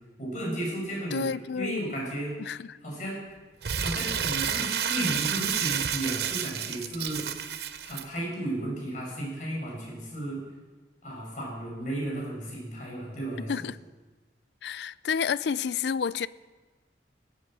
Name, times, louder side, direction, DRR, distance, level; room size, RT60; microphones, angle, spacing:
voice 1, 0.2-1.2 1.5-2.3 2.8-3.2 3.7-7.3 7.8-10.4 11.0-13.7, right 1 dB, 45° left, 5.8 m, -34 dB
voice 2, 1.1-1.9 2.4-2.8 13.5-13.8 14.6-16.3, left 6 dB, 70° left, 0.4 m, -30 dB
Crumpling crinkling, 3.6-8.0, right 8 dB, 65° right, 0.8 m, -30 dB
16.0 x 8.8 x 7.6 m
head